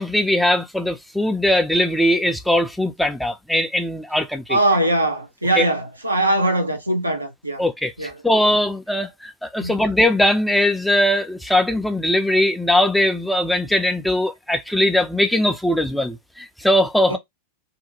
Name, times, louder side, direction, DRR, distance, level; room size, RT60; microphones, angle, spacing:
voice 1, 0.0-4.6 5.6-5.7 7.6-17.2, left 1 dB, ahead, 0.4 m, -20 dB
voice 2, 4.5-7.6 8.0-8.1 9.6-9.7 17.1-17.2, right 1 dB, 85° right, 0.6 m, -21 dB
2.6 x 2.1 x 2.8 m
figure-of-eight pair, 90°, 0 cm